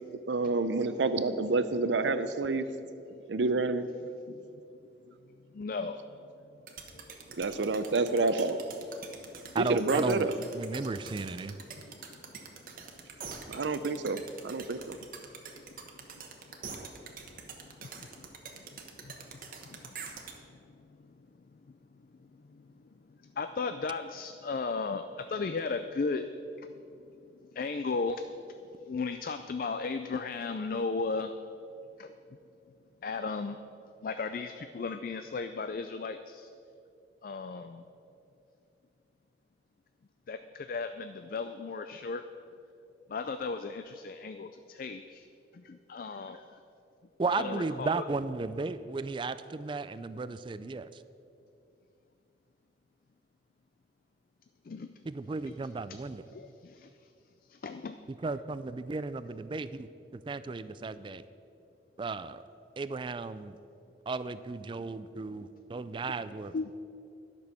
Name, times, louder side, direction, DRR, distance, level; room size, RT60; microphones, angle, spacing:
voice 1, 0.3-2.6 3.3-3.8 7.4-8.6 9.6-10.3 13.5-15.0, right 3 dB, 85° right, 11 dB, 0.6 m, -28 dB
voice 2, 1.1-1.5 3.1-3.2 4.0-4.4 5.5-6.0 8.2-8.3 10.4-10.5 11.7-11.8 17.8-18.2 19.0-19.1 19.7-19.8 23.4-26.2 27.5-28.2 28.9-31.3 32.0-32.1 33.0-33.6 34.0-36.5 37.2-37.8 40.3-42.2 43.1-45.2 45.7-46.4 47.4-48.0 54.7-54.9 55.4-55.5 56.3-56.9 57.5-58.0 66.1-66.2 66.5-66.7, left 4 dB, 50° left, 9 dB, 0.4 m, -35 dB
sound 1, 6.7-20.3, right 6 dB, 50° right, 1.1 m, -44 dB
voice 3, 9.5-10.3 10.5-11.6 47.2-51.0 55.1-56.2 58.2-59.9 60.1-61.2 62.0-62.4 62.8-63.6 64.1-66.5, right 3 dB, 25° right, 14 dB, 0.3 m, -34 dB
11.5 x 6.2 x 6.8 m, 2.6 s
head